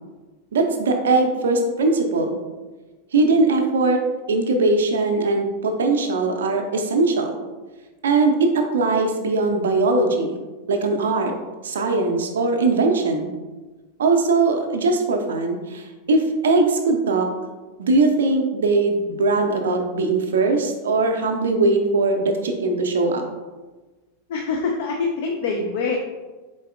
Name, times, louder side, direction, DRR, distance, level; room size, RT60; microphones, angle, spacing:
voice 1, 0.5-2.4 3.1-4.0 4.3-7.3 8.0-10.4 10.7-11.3 11.6-13.3 14.0-17.3 17.8-23.2, right 3 dB, 65° right, 4 dB, 0.5 m, -20 dB
voice 2, 24.3-26.0, left 4 dB, 55° left, 2 dB, 0.4 m, -24 dB
4.1 x 3.8 x 2.5 m, 1.3 s
figure-of-eight pair, 90°, 0 cm